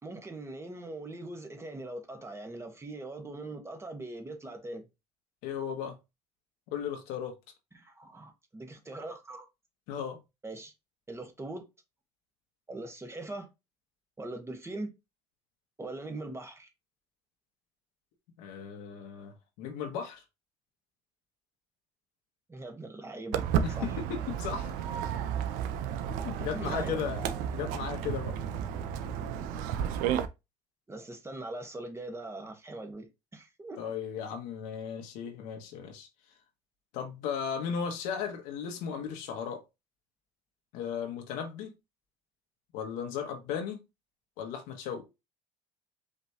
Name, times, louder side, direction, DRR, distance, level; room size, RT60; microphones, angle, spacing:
voice 1, 0.0-4.9 7.7-9.5 10.4-10.7 11.1-11.6 12.7-13.5 14.2-14.9 15.8-16.7 22.5-23.5 23.8-23.9 26.4-27.0 30.9-33.8, right 2 dB, 20° right, 1.2 m, -41 dB
voice 2, 5.4-6.0 6.7-7.3 9.9-10.2 18.4-20.2 23.6-24.7 26.1-27.2 27.5-28.4 33.8-36.1 36.9-39.6 40.7-41.7 42.7-43.8 44.4-45.0, left 7 dB, 75° left, 1.3 m, -36 dB
Walk footsteps, 23.3-30.2, right 9 dB, 75° right, 0.6 m, -32 dB
5.2 x 3.2 x 2.8 m
supercardioid pair, 80°, 14 cm